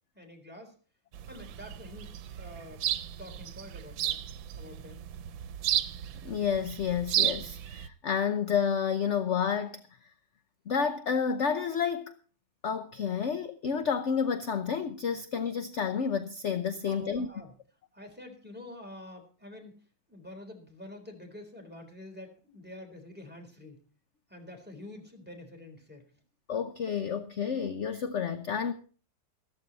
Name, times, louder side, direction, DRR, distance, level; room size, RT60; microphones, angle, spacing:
voice 1, 0.1-0.7 1.3-2.9 3.2-4.2 4.6-5.0 16.8-17.5 17.9-23.8 24.3-26.0, left 1 dB, 5° right, 3.8 m, -47 dB
sound 1, 1.1-7.9, right 11 dB, 90° right, 1.6 m, -33 dB
voice 2, 6.2-9.8 10.7-12.1 12.6-17.3 26.5-28.7, left 7 dB, 50° left, 0.9 m, -30 dB
14.5 x 14.0 x 4.1 m
omnidirectional pair, 2.0 m